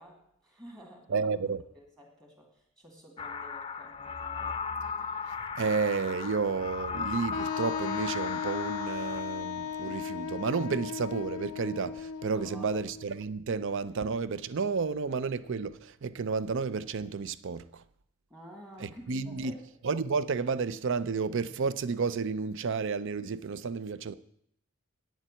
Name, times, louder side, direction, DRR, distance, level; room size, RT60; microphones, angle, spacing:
voice 1, 0.0-1.3 1.7-4.0 12.3-12.8 18.3-19.6, equal, 15° right, 2.2 m, -50 dB
voice 2, 1.1-1.6 5.6-17.8 18.8-19.5 19.8-24.1, right 5 dB, 60° right, 0.5 m, -31 dB
sound 1, 3.2-9.2, left 5 dB, 25° left, 0.6 m, -36 dB
Wind instrument woodwind instrument, 7.3-13.1, left 6 dB, 90° left, 0.4 m, -36 dB
9.2 x 7.2 x 8.9 m
head